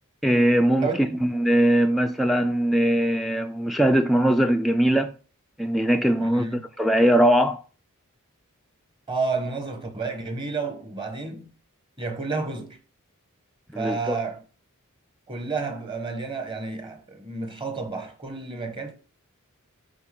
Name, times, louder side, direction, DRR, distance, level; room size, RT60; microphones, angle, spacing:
voice 1, 0.2-0.9 1.2-5.1 5.6-7.6 13.7-14.2, right 1 dB, ahead, 0.3 m, -21 dB
voice 2, 0.8-1.3 6.2-6.6 9.1-11.5 12.0-12.8 13.7-14.4 15.3-18.9, right 4 dB, 20° right, 1.0 m, -31 dB
10.0 x 4.4 x 3.7 m
head